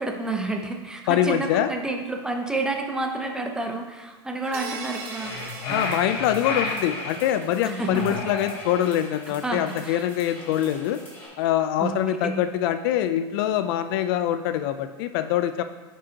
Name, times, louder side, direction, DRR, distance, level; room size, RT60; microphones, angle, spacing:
voice 1, 0.0-5.3 7.6-8.2 9.3-10.0 11.8-12.4, right 2 dB, 5° right, 3 dB, 0.5 m, -30 dB
voice 2, 1.1-1.7 5.7-11.0 11.4-15.6, left 11 dB, 60° left, 10 dB, 0.4 m, -24 dB
sound 1, 4.4-11.3, equal, 15° left, 2.1 m, -45 dB
sound 2, 4.5-7.0, right 5 dB, 60° right, 1.0 m, -40 dB
sound 3, 5.0-7.2 7.8-9.1, left 3 dB, 75° left, 1.8 m, -32 dB
9.6 x 5.1 x 2.8 m, 1.3 s
supercardioid pair, 150°, 14 cm